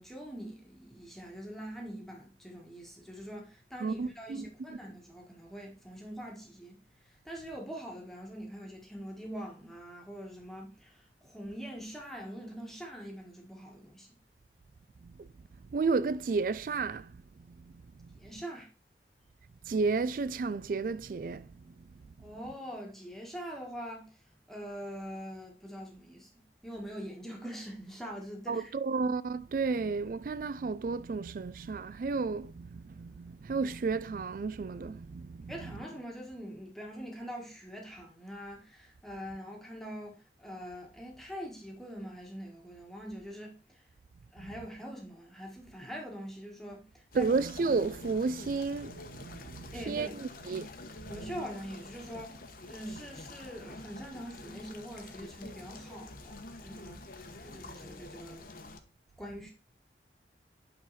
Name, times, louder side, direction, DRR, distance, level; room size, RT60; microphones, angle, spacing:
voice 1, 0.0-14.1 18.1-18.7 22.2-28.7 35.5-43.8 44.3-47.3 49.7-50.2 51.1-56.4 56.6-57.0 57.4-58.6 59.2-59.5, equal, ahead, 1.5 m, -44 dB
sound 1, 0.9-20.2, left 1 dB, 25° right, 1.2 m, -75 dB
voice 2, 3.8-4.8 15.0-15.3 15.7-17.1 18.0-18.1 19.7-21.5 28.5-35.8 44.4-44.6 47.1-50.7 51.0-51.4 52.9-53.0 56.9-57.0, right 4 dB, 50° right, 0.3 m, -32 dB
sound 2, 47.1-58.8, left 2 dB, 55° left, 0.9 m, -48 dB
8.9 x 4.0 x 4.1 m
head